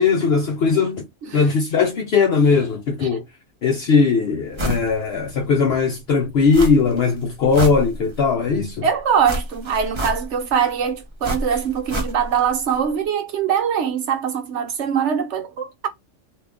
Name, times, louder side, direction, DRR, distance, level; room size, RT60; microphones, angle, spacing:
voice 1, 0.0-1.1 1.3-3.2 3.6-8.9, left 5 dB, 60° left, 0.7 m, -19 dB
sound 1, 4.6-4.9 5.3-5.4 6.5-7.0 7.3-8.3 9.2-10.5 11.2-12.5 12.7-12.8, right 1 dB, 30° right, 0.6 m, -28 dB
voice 2, 8.8-15.9, right 7 dB, 65° right, 1.1 m, -22 dB
2.6 x 2.4 x 3.4 m
omnidirectional pair, 1.3 m